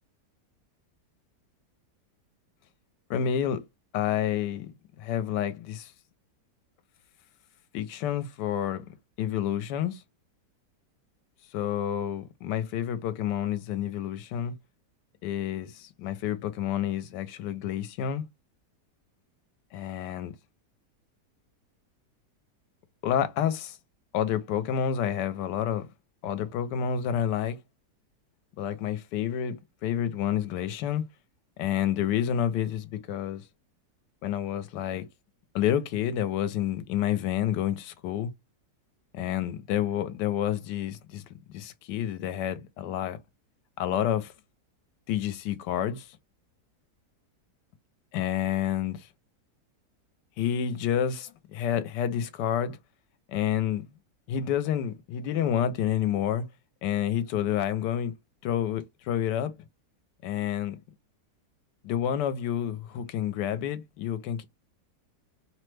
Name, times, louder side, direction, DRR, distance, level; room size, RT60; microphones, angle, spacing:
voice 1, 3.1-3.6 3.9-4.7 5.0-5.9 7.7-8.8 9.2-10.0 11.5-14.5 15.2-18.2 19.7-20.3 23.0-23.8 24.1-25.9 26.2-27.6 28.6-31.0 31.6-33.4 34.2-35.0 35.5-38.3 39.1-41.2 41.5-43.2 43.8-44.3 45.1-46.2 48.1-49.1 50.4-52.8 53.3-53.8 54.3-56.5 56.8-58.1 58.4-59.5 60.2-60.8 61.8-64.5, left 9 dB, 80° left, 1.2 m, -29 dB
3.1 x 2.1 x 3.1 m
omnidirectional pair, 1.8 m